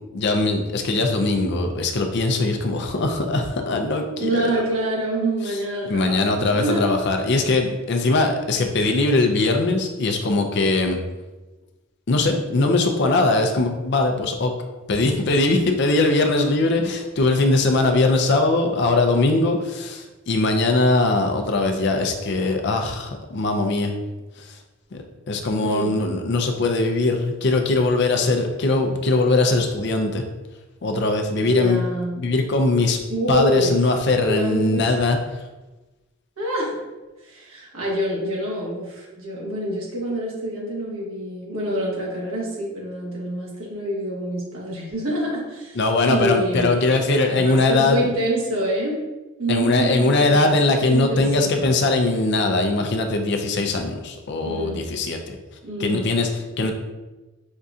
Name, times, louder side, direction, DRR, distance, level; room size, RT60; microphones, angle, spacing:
voice 1, 0.1-4.5 5.5-5.6 5.9-11.0 12.1-14.5 14.9-23.9 24.4-24.5 24.9-30.2 30.8-31.8 32.2-33.0 33.3-35.2 45.8-48.1 49.5-55.4 55.8-56.7, left 2 dB, 55° left, 5 dB, 0.4 m, -21 dB
voice 2, 4.2-6.9 25.6-26.0 31.4-32.2 33.1-33.8 34.2-34.9 36.4-36.8 37.2-45.8 46.1-46.7 47.3-49.0 49.4-51.7 54.4-54.9 55.6-56.1, right 1 dB, 90° right, -4 dB, 1.3 m, -26 dB
5.2 x 2.6 x 2.4 m, 1.1 s
head